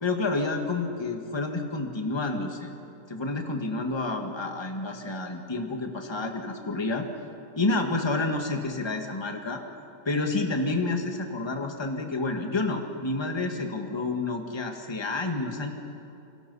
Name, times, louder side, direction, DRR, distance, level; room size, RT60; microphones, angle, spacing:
voice 1, 0.0-2.7 3.1-7.1 7.6-9.6 10.1-15.7, left 3 dB, 15° left, 3 dB, 1.8 m, -29 dB
30.0 x 23.5 x 5.6 m, 2.7 s
omnidirectional pair, 1.9 m